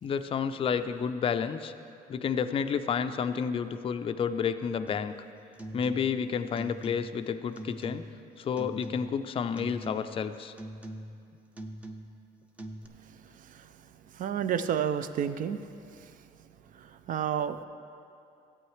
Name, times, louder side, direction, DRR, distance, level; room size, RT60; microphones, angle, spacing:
voice 1, 0.0-1.7 2.1-5.1 5.7-8.0 8.4-10.5, left 7 dB, 35° left, 10 dB, 0.4 m, -30 dB
sound 1, 4.9-5.2 5.5-6.2 6.5-7.2 7.6-8.2 8.6-9.3 9.6-10.2 10.6-11.2 11.5-12.2 12.6-12.9, right 1 dB, 10° right, 0.7 m, -42 dB
voice 2, 14.1-15.6 16.0-16.1 16.7-17.6, right 8 dB, 55° right, 12 dB, 0.5 m, -30 dB
14.5 x 8.5 x 3.2 m, 2.6 s
cardioid pair, 110°, 17 cm